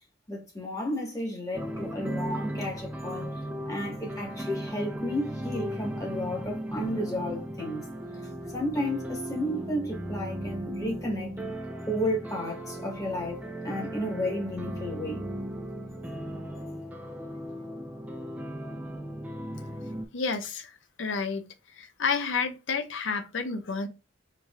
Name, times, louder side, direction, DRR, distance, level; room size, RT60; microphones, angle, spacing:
voice 1, 0.3-3.3 3.6-7.9 8.5-11.3 11.8-15.2, left 1 dB, 20° left, 1.3 m, -32 dB
sound 1, 1.5-20.1, right 1 dB, 10° right, 0.5 m, -36 dB
voice 2, 20.1-23.9, left 5 dB, 70° left, 0.6 m, -31 dB
4.7 x 3.1 x 2.3 m
head